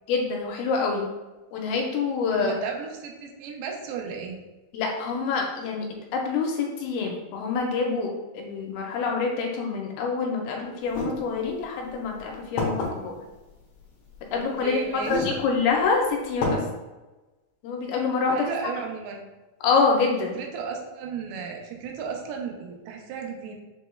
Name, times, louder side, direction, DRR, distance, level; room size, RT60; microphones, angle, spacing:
voice 1, 0.1-1.1 1.5-2.6 4.7-5.9 6.1-8.1 8.3-13.2 14.3-16.6 17.6-18.4 19.6-20.4, left 4 dB, 80° left, 1 dB, 2.3 m, -26 dB
voice 2, 2.3-4.4 14.3-15.3 18.3-19.3 20.3-23.6, right 6 dB, 85° right, 1 dB, 2.6 m, -34 dB
sound 1, 10.9-11.1 11.9-12.0 12.6-12.9 14.1-14.2 15.0-15.4 15.8-15.9 16.4-16.6, left 3 dB, 65° left, 1.7 m, -27 dB
7.4 x 3.1 x 2.2 m, 1.1 s
omnidirectional pair, 4.5 m